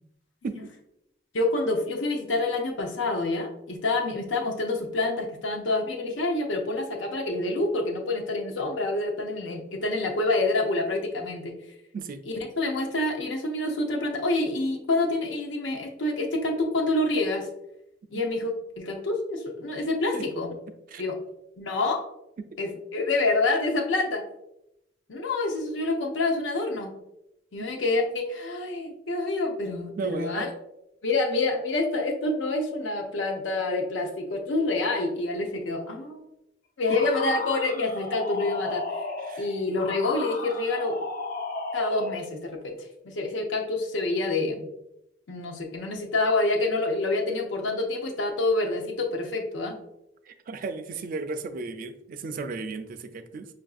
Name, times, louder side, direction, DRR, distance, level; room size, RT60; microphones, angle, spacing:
voice 1, 1.3-11.5 12.3-17.5 18.1-20.5 21.0-21.2 21.6-22.0 22.6-24.2 25.1-26.9 27.5-30.5 31.0-36.2 36.8-38.8 39.4-41.1 41.7-42.8 43.0-44.7 45.3-49.7, left 2 dB, 90° left, 2 dB, 0.6 m, -27 dB
voice 2, 30.0-30.5 39.2-39.5 50.3-53.5, right 3 dB, 50° right, 9 dB, 0.3 m, -34 dB
sound 1, 36.9-42.3, left 3 dB, 50° left, 0.5 m, -34 dB
5.6 x 2.5 x 2.3 m, 0.85 s
head